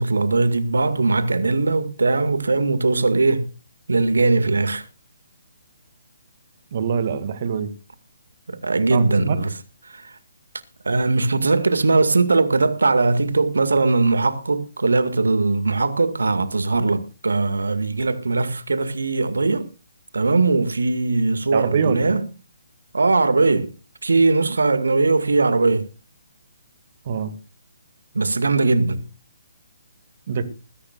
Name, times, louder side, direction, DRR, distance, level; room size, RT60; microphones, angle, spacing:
voice 1, 0.0-3.5 3.9-4.9 8.5-9.5 9.9-10.1 10.8-19.7 20.1-22.2 22.9-23.7 24.0-25.9 28.1-29.0, right 3 dB, 65° right, 2.1 m, -20 dB
voice 2, 6.7-7.7 8.9-9.4 21.5-22.1 27.1-27.3 30.3-30.4, right 6 dB, 40° right, 2.2 m, -24 dB
20.5 x 14.5 x 2.5 m
figure-of-eight pair, 135°, 0 cm